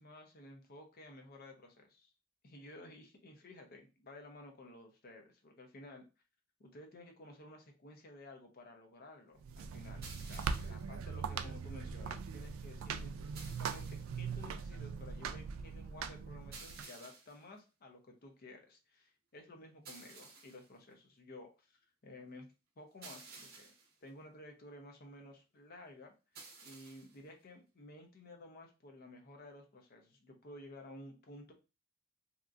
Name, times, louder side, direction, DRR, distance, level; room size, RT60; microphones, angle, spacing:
voice 1, 0.0-2.1 2.4-6.0 6.6-22.5 22.8-23.7 24.0-31.5, left 1 dB, 50° left, 3 dB, 0.6 m, -54 dB
sound 1, 9.4-16.8, right 6 dB, 80° right, 0.3 m, -41 dB
sound 2, 10.0-10.9 13.4-14.2 16.5-17.4 19.9-20.7 23.0-23.9 26.4-27.2, right 4 dB, 50° right, 0.8 m, -53 dB
2.8 x 2.5 x 2.4 m, 0.30 s
head